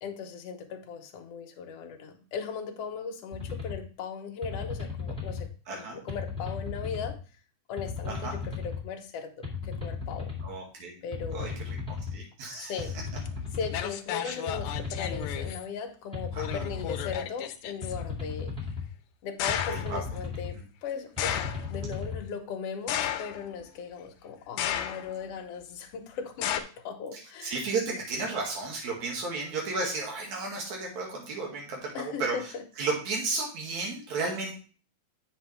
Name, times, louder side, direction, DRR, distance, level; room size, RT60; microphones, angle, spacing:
voice 1, 0.0-7.2 7.7-10.3 11.0-11.6 12.5-12.9 13.5-18.6 19.2-27.6 27.9-28.0 31.9-32.6, left 6 dB, 65° left, 3 dB, 1.9 m, -38 dB
sound 1, 3.3-3.8 4.4-5.4 6.1-7.1 7.8-8.8 9.4-10.5 11.1-12.1 12.8-13.8 14.5-15.5 16.1-17.2 17.8-18.8 19.5-20.5 21.2-22.2, left 5 dB, ahead, 1.6 m, -35 dB
voice 2, 5.7-6.0 8.1-8.4 10.4-11.0 11.3-12.7 14.2-14.3 16.5-16.6 19.7-20.0 27.1-34.6, right 3 dB, 70° right, -2 dB, 3.4 m, -33 dB
sound 2, 13.3-13.4 13.7-15.6 16.4-17.9 19.4-20.0 21.2-21.7 22.9-23.6 24.6-25.2 26.4-26.6, left 10 dB, 85° left, 2.0 m, -33 dB
7.9 x 6.2 x 3.4 m, 0.38 s
omnidirectional pair, 3.4 m